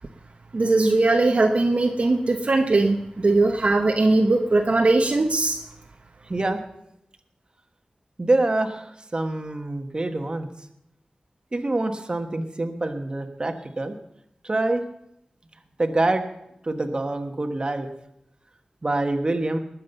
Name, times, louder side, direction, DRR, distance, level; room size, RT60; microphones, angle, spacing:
voice 1, 0.5-5.6, right 2 dB, 55° right, 3 dB, 1.1 m, -20 dB
voice 2, 6.3-6.6 8.2-10.5 11.5-14.0 14.4-14.8 15.8-16.2 16.6-17.9 18.8-19.6, right 2 dB, 35° right, 6 dB, 1.4 m, -25 dB
20.0 x 7.6 x 5.5 m, 0.80 s
wide cardioid pair, 85°, 3 cm